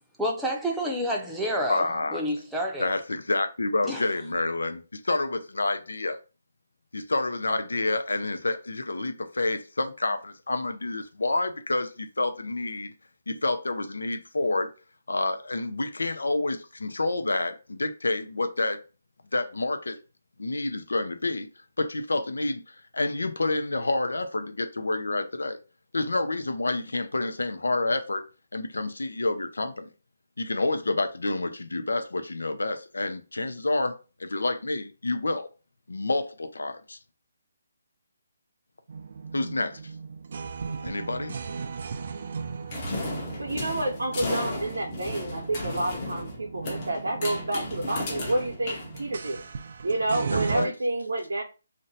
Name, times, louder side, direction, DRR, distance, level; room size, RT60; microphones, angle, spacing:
voice 1, 0.2-2.9 3.8-4.0, equal, 5° right, 0.6 m, -29 dB
voice 2, 1.7-2.2 2.8-6.2 6.9-12.9 13.3-14.7 15.1-18.8 19.3-20.0 20.4-21.5 21.8-25.6 25.9-28.3 28.5-29.9 30.4-35.5 35.9-37.0 39.3-39.8 40.8-41.3 50.3-50.7, left 2 dB, 90° left, 0.5 m, -28 dB
sound 1, 38.9-50.7, right 5 dB, 55° right, 0.3 m, -37 dB
sound 2, 42.7-49.4, left 2 dB, 35° left, 0.8 m, -35 dB
voice 3, 43.4-49.4 49.8-51.4, right 2 dB, 85° right, 0.7 m, -29 dB
2.6 x 2.1 x 4.0 m
hypercardioid pair, 155°, 0 cm